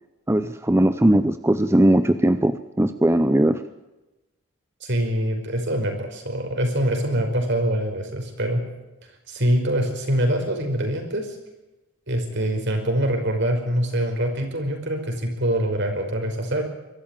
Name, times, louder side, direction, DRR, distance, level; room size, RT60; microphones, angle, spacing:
voice 1, 0.3-3.6, right 1 dB, 10° right, 11 dB, 0.6 m, -19 dB
voice 2, 4.8-8.6 9.3-11.4 12.1-16.6, right 1 dB, 55° right, 4 dB, 5.3 m, -24 dB
23.5 x 14.0 x 8.9 m, 1.0 s
head